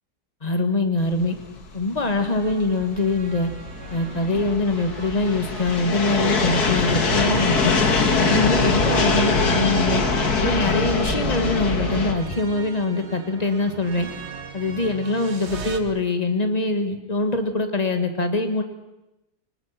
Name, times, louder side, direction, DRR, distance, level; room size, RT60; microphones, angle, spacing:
voice 1, 0.4-1.3 1.7-3.5 3.9-7.8 8.2-10.0 10.4-14.1 14.5-18.6, left 2 dB, 25° left, 6 dB, 2.0 m, -23 dB
sound 1, 1.2-12.1, left 3 dB, 70° left, 2.4 m, -23 dB
sound 2, 2.4-15.8, right 4 dB, 45° right, 1.8 m, -40 dB
24.5 x 19.5 x 6.0 m, 0.96 s
omnidirectional pair, 1.7 m